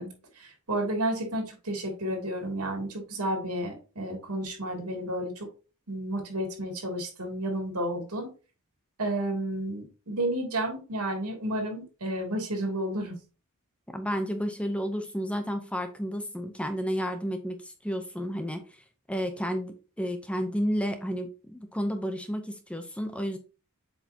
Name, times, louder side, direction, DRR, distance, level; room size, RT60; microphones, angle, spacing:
voice 1, 0.0-5.5 5.9-8.3 9.0-13.2, right 1 dB, 85° right, 2.7 m, -31 dB
voice 2, 13.9-18.6 19.1-23.4, equal, 5° left, 0.7 m, -31 dB
7.9 x 4.9 x 2.8 m
head